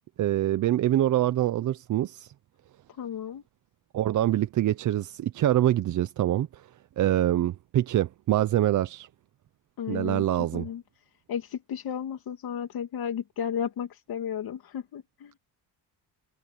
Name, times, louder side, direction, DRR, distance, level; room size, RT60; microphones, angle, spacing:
voice 1, 0.2-2.3 3.9-6.7 7.0-9.1 9.9-10.7, right 13 dB, 50° right, 0.6 m, -25 dB
voice 2, 3.0-3.4 9.8-10.2 10.5-10.8 11.3-15.3, left 8 dB, 65° left, 2.4 m, -33 dB
cardioid pair, 170°, 40 cm